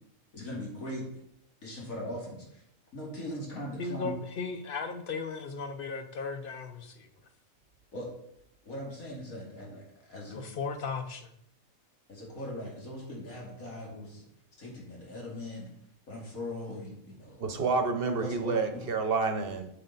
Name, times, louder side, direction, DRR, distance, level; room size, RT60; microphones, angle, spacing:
voice 1, 0.3-1.1 1.6-2.6 2.9-4.1 7.9-8.1 8.6-10.4 12.1-14.2 14.6-15.7 16.1-17.7 18.2-18.8, left 1 dB, 80° left, -3 dB, 3.0 m, -40 dB
voice 2, 3.8-7.1 10.3-11.3, left 4 dB, 45° left, 8 dB, 0.9 m, -36 dB
voice 3, 17.4-19.7, right 4 dB, 50° right, 6 dB, 1.0 m, -29 dB
8.1 x 7.6 x 4.1 m, 0.74 s
omnidirectional pair, 1.4 m